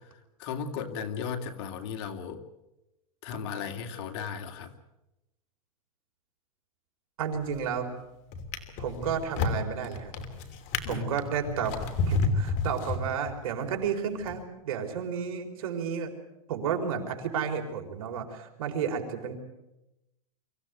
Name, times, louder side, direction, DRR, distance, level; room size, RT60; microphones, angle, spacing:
voice 1, 0.0-2.4 3.2-4.7 10.8-11.2, left 6 dB, 55° left, 6 dB, 2.5 m, -36 dB
voice 2, 7.2-8.0 8.8-10.1 10.9-11.7 12.1-16.1 16.5-19.4, right 7 dB, 70° right, 4 dB, 4.4 m, -32 dB
Drawer open or close, 7.3-7.8 8.3-13.5 14.2-14.4, left 4 dB, 40° left, 3.0 m, -31 dB
25.0 x 15.5 x 9.5 m, 0.95 s
supercardioid pair, 140°, 18 cm